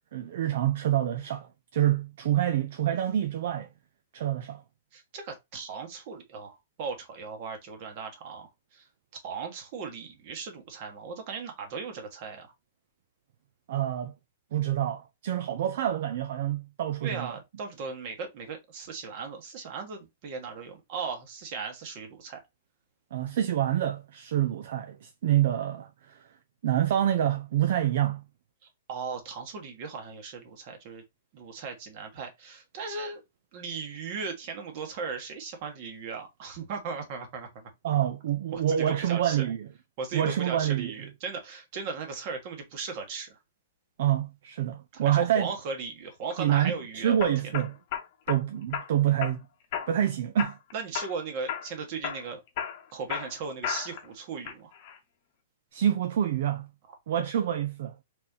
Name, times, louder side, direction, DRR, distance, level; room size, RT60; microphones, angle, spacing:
voice 1, 0.1-3.7 4.1-4.6 13.7-14.1 14.5-17.3 23.1-26.3 26.6-28.2 37.8-39.7 40.1-40.9 44.0-45.5 46.4-47.7 48.3-49.4 49.9-50.6 55.7-56.7 57.1-58.0, right 11 dB, 55° right, 0.5 m, -27 dB
voice 2, 4.9-8.9 9.2-12.5 17.0-22.4 28.9-31.0 31.3-33.2 33.5-37.7 38.5-39.4 40.0-43.4 44.9-47.5 50.7-52.4 52.9-54.7, right 5 dB, 35° right, 1.4 m, -37 dB
sound 1, 46.3-46.7 47.2-48.4 48.7-49.4 49.7-50.1 50.4-51.2 51.5-51.7 52.0-54.1 54.5-55.0, left 9 dB, 40° left, 0.9 m, -34 dB
4.2 x 3.7 x 2.7 m
hypercardioid pair, 170°, 0 cm